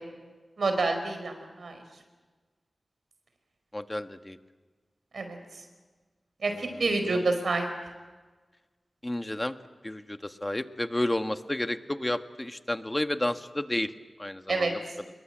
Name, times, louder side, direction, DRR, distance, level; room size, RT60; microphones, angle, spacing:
voice 1, 0.6-1.7 5.1-5.4 6.4-7.7 14.5-14.7, right 3 dB, 85° right, 6 dB, 4.9 m, -28 dB
voice 2, 3.7-4.4 6.5-6.8 7.1-7.2 9.0-9.5 9.8-13.9 14.2-14.8, left 1 dB, 20° left, 9 dB, 1.4 m, -31 dB
26.0 x 22.0 x 9.0 m, 1.4 s
wide cardioid pair, 60°, 0 cm